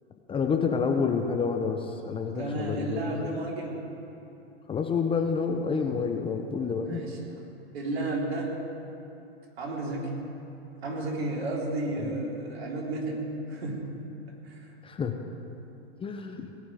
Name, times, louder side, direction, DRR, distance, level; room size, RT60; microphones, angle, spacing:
voice 1, 0.3-3.3 4.7-7.0 12.0-12.1 14.8-15.1 16.0-16.5, left 5 dB, 15° left, 4 dB, 0.9 m, -28 dB
voice 2, 2.3-3.8 6.8-7.2 7.7-8.6 9.6-10.1 10.8-14.0 14.4-14.8, right 2 dB, 70° right, -3 dB, 4.0 m, -32 dB
19.0 x 6.3 x 9.3 m, 2.8 s
hypercardioid pair, 110°, 32 cm